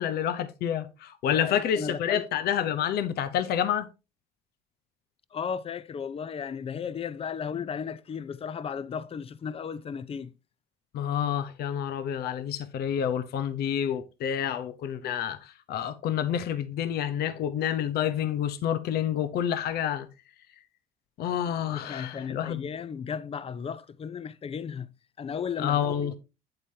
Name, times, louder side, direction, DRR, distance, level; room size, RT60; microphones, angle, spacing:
voice 1, 0.0-3.9 10.9-20.1 21.2-22.7 25.6-26.1, left 9 dB, 70° left, 0.9 m, -28 dB
voice 2, 1.3-2.4 5.3-10.3 21.5-24.9 25.2-26.2, left 7 dB, 35° left, 0.7 m, -35 dB
8.9 x 8.0 x 2.8 m
cardioid pair, 110°, 17 cm